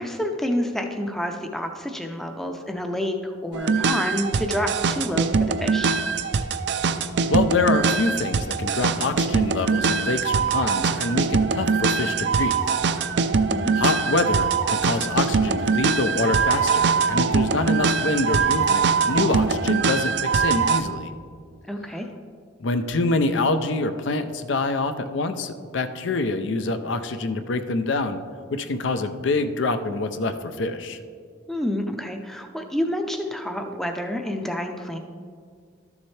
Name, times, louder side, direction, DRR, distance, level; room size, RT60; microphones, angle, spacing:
voice 1, 0.0-6.0 13.5-13.7 21.7-22.1 31.5-35.0, equal, ahead, 4 dB, 0.5 m, -28 dB
sound 1, 3.5-20.8, right 5 dB, 55° right, 0.4 m, -22 dB
voice 2, 7.3-12.5 13.8-21.1 22.6-28.2 28.5-31.0, left 3 dB, 70° left, 9 dB, 0.5 m, -26 dB
12.5 x 7.2 x 3.2 m, 2.1 s
head